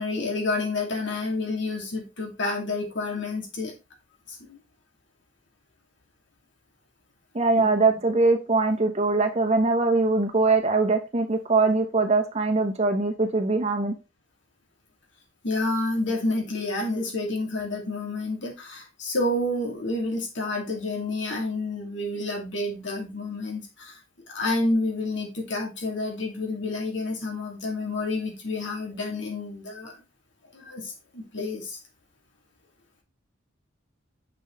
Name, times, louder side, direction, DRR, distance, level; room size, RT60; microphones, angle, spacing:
voice 1, 0.0-3.7 4.3-4.6 7.6-7.7 15.4-24.0 24.3-29.9 30.5-31.8, left 2 dB, 65° left, 0 dB, 2.5 m, -29 dB
voice 2, 7.3-13.9, right 3 dB, 35° right, 5 dB, 1.1 m, -22 dB
6.5 x 6.2 x 3.2 m, 0.27 s
head